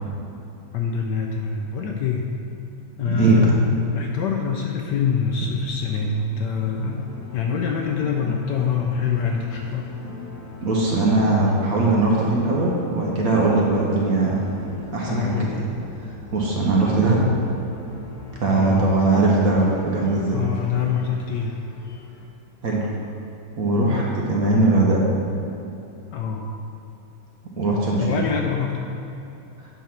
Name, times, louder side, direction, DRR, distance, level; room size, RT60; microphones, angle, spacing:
voice 1, 0.7-2.3 3.0-9.9 15.0-15.6 18.5-18.8 20.3-21.6 26.1-26.5 28.0-28.8, left 6 dB, 75° left, 2 dB, 1.0 m, -25 dB
voice 2, 3.0-3.5 8.2-8.3 10.6-14.4 14.9-15.5 16.3-17.2 18.4-20.4 22.6-22.9 23.6-25.0 27.6-28.1, right 2 dB, 55° right, -3 dB, 1.2 m, -20 dB
sound 1, 5.9-22.3, left 2 dB, 60° left, 1.4 m, -41 dB
9.4 x 3.6 x 5.8 m, 2.9 s
omnidirectional pair, 2.2 m